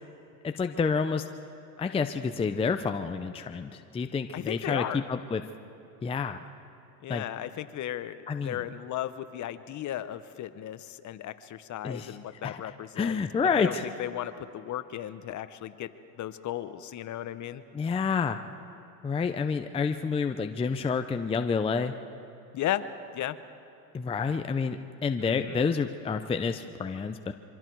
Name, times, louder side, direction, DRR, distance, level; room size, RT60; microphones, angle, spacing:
voice 1, 0.4-1.3 1.8-5.4 6.0-6.4 7.1-7.2 8.3-8.6 11.8-12.2 12.4-13.9 17.7-18.4 19.0-21.9 23.9-27.3, left 5 dB, 10° left, 7 dB, 0.6 m, -29 dB
voice 2, 4.3-5.0 7.0-13.2 13.5-15.9 16.2-17.6 22.5-22.8 23.1-23.4 25.2-25.6, left 12 dB, 40° left, 12 dB, 0.9 m, -35 dB
24.5 x 24.0 x 4.7 m, 2.7 s
supercardioid pair, 110°, 47 cm